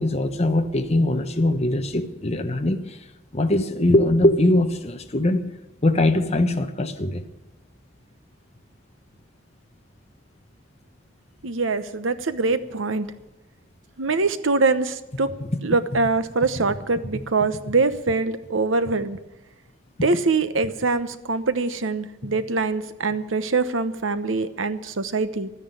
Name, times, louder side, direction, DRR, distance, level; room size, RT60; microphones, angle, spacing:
voice 1, 0.0-3.0 3.3-5.5 5.8-7.2 15.4-15.5, left 1 dB, 35° left, 6 dB, 1.1 m, -21 dB
voice 2, 11.4-13.1 14.0-15.3 15.6-19.2 20.0-25.5, right 3 dB, 80° right, 12 dB, 1.0 m, -23 dB
13.0 x 10.0 x 9.2 m, 1.0 s
head